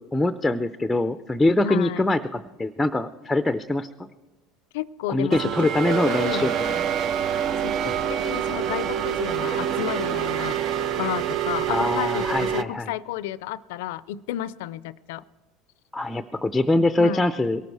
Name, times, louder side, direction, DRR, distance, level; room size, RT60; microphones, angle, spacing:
voice 1, 0.0-3.9 5.1-6.8 7.9-8.0 11.7-12.9 15.9-17.6, left 2 dB, 5° left, 10 dB, 0.5 m, -23 dB
voice 2, 1.6-2.1 4.7-6.5 7.6-10.6 11.0-15.2 17.0-17.3, left 12 dB, 80° left, 19 dB, 0.4 m, -32 dB
sound 1, 5.3-12.6, right 9 dB, 50° right, 0.5 m, -26 dB
22.5 x 13.0 x 4.7 m, 1.2 s
supercardioid pair, 105°, 0 cm